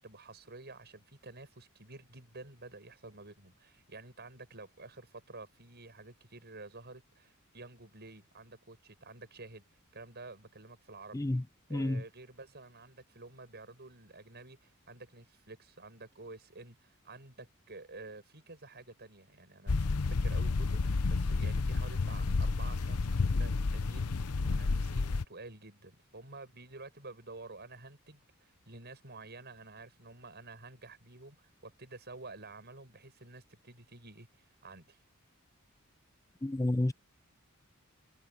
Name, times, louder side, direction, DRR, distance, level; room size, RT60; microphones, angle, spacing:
voice 1, 0.0-9.6 9.9-11.2 11.7-35.0, right 3 dB, 50° right, 7.6 m, -50 dB
voice 2, 11.7-12.0 36.4-36.9, left 1 dB, 15° left, 0.5 m, -30 dB
sound 1, 19.7-25.2, left 3 dB, 90° left, 0.8 m, -30 dB
head